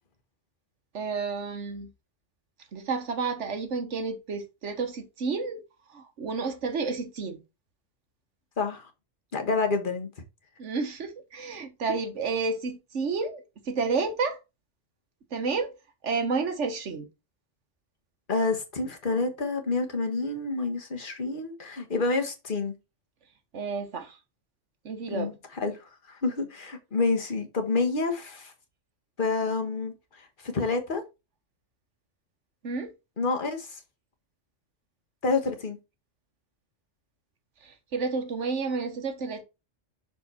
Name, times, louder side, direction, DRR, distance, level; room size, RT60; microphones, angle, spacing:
voice 1, 0.9-1.9 2.7-5.6 5.9-7.4 10.6-14.4 15.3-15.7 16.0-17.1 23.5-24.2 24.8-25.3 32.6-32.9 37.6-39.4, right 4 dB, 75° right, 1.5 m, -30 dB
voice 2, 9.3-10.1 18.3-22.7 25.1-25.8 26.1-28.5 29.2-29.9 30.5-31.0 33.2-33.8 35.2-35.8, left 3 dB, 45° left, 1.5 m, -28 dB
6.3 x 4.7 x 4.3 m
omnidirectional pair, 1.2 m